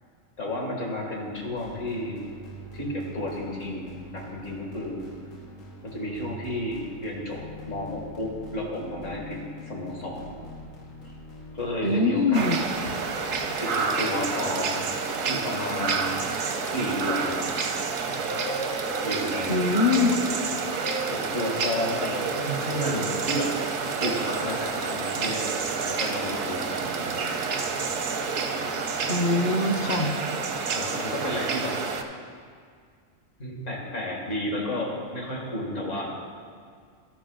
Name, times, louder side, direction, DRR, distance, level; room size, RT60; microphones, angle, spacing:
voice 1, 0.4-2.3 2.7-5.1 5.8-7.4 7.7-10.4 11.5-12.5 13.6-14.9 15.3-16.2 16.6-17.5 19.0-19.8 21.0-23.5 24.0-25.4 25.8-27.3 30.7-31.8 33.4-36.2, left 1 dB, 70° left, -1 dB, 2.0 m, -32 dB
sound 1, 1.4-13.6, left 1 dB, 90° left, 1.6 m, -44 dB
voice 2, 11.8-12.6 19.5-20.1 29.1-30.1, left 3 dB, 50° left, 4 dB, 0.6 m, -23 dB
sound 2, 12.3-32.0, right 5 dB, 85° right, 1.1 m, -29 dB
sound 3, 13.6-28.4, right 5 dB, 45° right, 0.4 m, -43 dB
12.5 x 6.0 x 3.8 m, 2.1 s
omnidirectional pair, 1.3 m